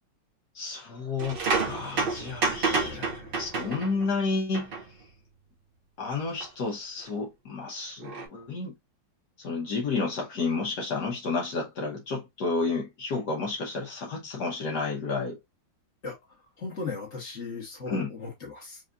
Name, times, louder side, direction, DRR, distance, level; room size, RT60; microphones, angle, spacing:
voice 1, 0.5-3.1 3.4-4.7 6.0-8.7 9.4-15.4 17.9-18.1, left 4 dB, 65° left, 1.5 m, -31 dB
sound 1, 1.2-4.1 4.5-4.8 6.4-6.5 8.0-8.3, right 4 dB, 60° right, 0.5 m, -29 dB
voice 2, 2.6-3.5 16.0-18.8, left 4 dB, 40° left, 1.8 m, -38 dB
4.8 x 2.7 x 2.4 m
omnidirectional pair, 2.0 m